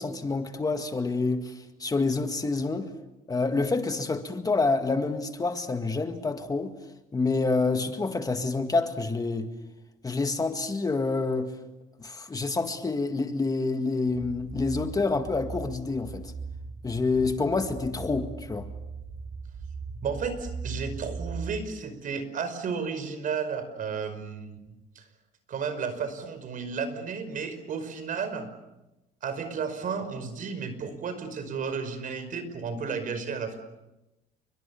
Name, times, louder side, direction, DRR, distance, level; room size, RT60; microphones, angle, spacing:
voice 1, 0.0-2.9 3.3-6.7 7.1-9.5 10.0-11.6 12.0-16.3 16.8-18.7, left 3 dB, 20° left, 1.9 m, -27 dB
sound 1, 14.1-21.6, right 4 dB, 25° right, 4.4 m, -39 dB
voice 2, 20.0-24.6 25.0-25.1 25.5-28.5 29.2-33.6, right 5 dB, 50° right, 5.4 m, -33 dB
29.5 x 23.5 x 7.2 m
cardioid pair, 110°, 17 cm